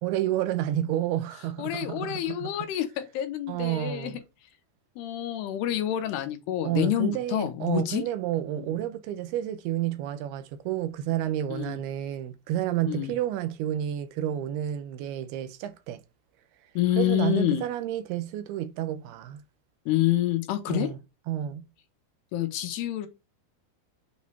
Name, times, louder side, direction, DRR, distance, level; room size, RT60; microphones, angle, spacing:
voice 1, 0.0-2.7 3.5-4.2 6.6-16.0 17.0-19.4 20.7-21.0 21.3-21.7, right 12 dB, 80° right, 2.5 m, -30 dB
voice 2, 1.6-4.1 5.0-8.0 8.6-8.7 11.5-11.8 12.9-13.1 16.8-17.7 19.9-20.9 22.3-23.1, left 13 dB, 90° left, 2.9 m, -28 dB
8.3 x 3.2 x 5.5 m
omnidirectional pair, 4.7 m